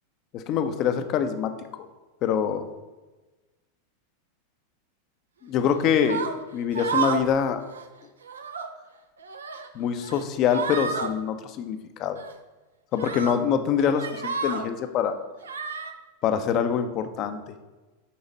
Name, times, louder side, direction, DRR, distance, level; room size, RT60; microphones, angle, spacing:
voice 1, 0.3-1.5 2.2-2.7 5.4-6.2 6.5-7.6 9.7-12.2 12.9-15.2 16.2-17.4, left 8 dB, 45° left, 8 dB, 0.7 m, -25 dB
sound 1, 6.0-6.3 6.7-7.3 7.6-7.9 8.2-8.7 9.2-9.7 10.0-10.2 10.5-11.1 12.2-12.3 13.0-13.4 13.8-14.7 15.4-15.9, right 6 dB, 80° right, 0.6 m, -31 dB
8.5 x 4.0 x 4.0 m, 1.2 s
hypercardioid pair, 90°, 0 cm